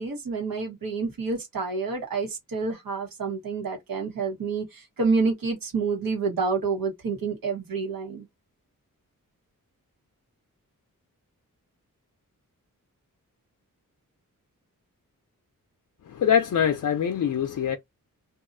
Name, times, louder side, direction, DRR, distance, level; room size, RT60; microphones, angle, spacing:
voice 1, 0.0-8.2, right 4 dB, 80° right, 1.3 m, -28 dB
voice 2, 16.0-17.8, left 8 dB, 65° left, 0.5 m, -23 dB
2.7 x 2.4 x 2.5 m
wide cardioid pair, 105°, 34 cm